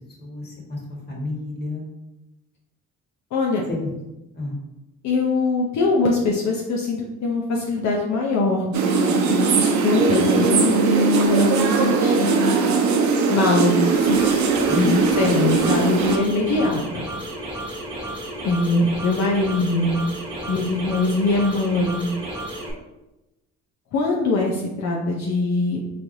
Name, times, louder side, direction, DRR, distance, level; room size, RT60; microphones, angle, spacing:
voice 1, 0.2-0.8 1.1-1.8 3.7-3.8 4.3-4.6 14.7-15.0, left 3 dB, 35° left, -2 dB, 1.4 m, -27 dB
voice 2, 3.3-3.6 5.0-12.7 13.3-14.4 15.2-17.0 18.4-20.0 20.5-22.0 23.9-25.8, left 2 dB, 65° left, -1 dB, 0.7 m, -22 dB
sound 1, 8.7-16.2, right 5 dB, 65° right, 0.7 m, -20 dB
sound 2, 13.8-22.7, right 1 dB, 15° right, 1.3 m, -33 dB
4.2 x 3.2 x 2.7 m, 0.98 s
cardioid pair, 90°, 30 cm